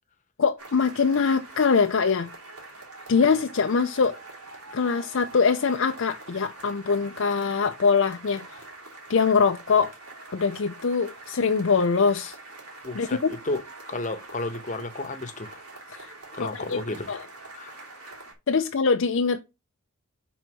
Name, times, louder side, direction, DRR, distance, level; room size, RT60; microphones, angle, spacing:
voice 1, 0.4-2.3 3.1-4.2 4.7-8.4 9.1-9.9 10.3-12.3 12.9-13.3 15.9-16.1 16.4-16.8 17.1-17.2 18.5-19.4, left 5 dB, 60° left, 0.5 m, -23 dB
sound 1, 0.6-18.3, right 2 dB, 90° right, 2.7 m, -44 dB
voice 2, 12.8-15.6 16.3-17.1 17.5-17.8, left 2 dB, 35° left, 1.0 m, -33 dB
6.1 x 4.0 x 6.1 m
head